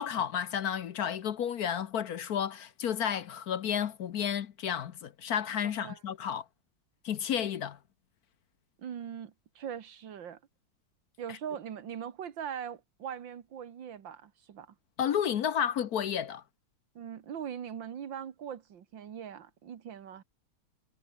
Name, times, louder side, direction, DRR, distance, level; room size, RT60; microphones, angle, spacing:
voice 1, 0.0-6.4 7.0-7.8 15.0-16.4, left 9 dB, 60° left, 1.2 m, -31 dB
voice 2, 5.6-6.0 8.8-10.4 11.2-14.8 17.0-20.2, right 8 dB, 80° right, 2.2 m, -41 dB
omnidirectional pair, 2.0 m